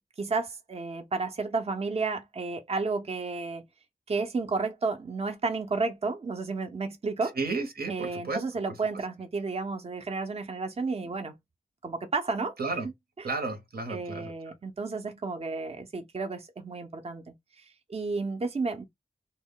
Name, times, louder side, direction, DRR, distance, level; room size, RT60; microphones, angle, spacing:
voice 1, 0.2-3.6 4.1-7.4 7.9-11.3 11.8-12.6 12.8-12.9 13.2-13.3 13.9-18.8, right 4 dB, 40° right, 0.5 m, -32 dB
voice 2, 7.4-8.4 12.6-12.9 13.2-14.3, right 3 dB, 90° right, 0.9 m, -32 dB
2.1 x 2.1 x 3.5 m
wide cardioid pair, 80°, 15 cm